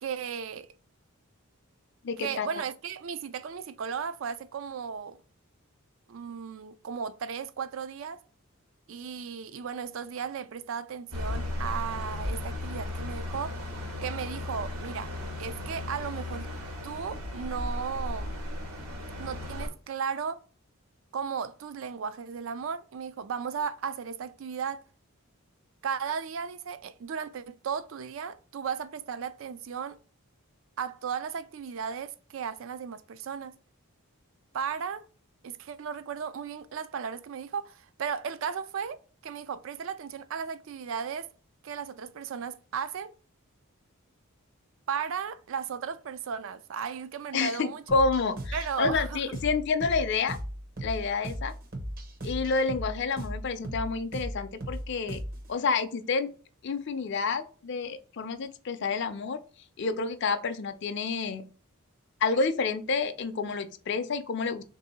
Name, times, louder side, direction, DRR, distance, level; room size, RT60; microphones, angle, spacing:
voice 1, 0.0-0.7 2.2-5.2 6.1-8.2 8.9-13.6 14.0-15.1 15.4-16.5 16.8-18.3 19.2-20.4 21.1-24.8 25.8-30.0 30.8-33.5 34.5-35.0 35.4-39.0 39.2-41.3 41.6-43.1 44.9-48.0 48.5-49.2, right 6 dB, 60° right, 0.4 m, -35 dB
voice 2, 2.0-2.5 47.3-50.4 50.8-51.5 52.2-55.2 55.5-56.3 56.6-59.4 59.8-61.4 62.2-64.6, left 4 dB, 50° left, 0.4 m, -29 dB
sound 1, 11.1-19.7, left 1 dB, 85° right, 1.4 m, -35 dB
sound 2, 47.9-55.5, equal, 40° right, 0.7 m, -37 dB
3.6 x 2.7 x 4.1 m
head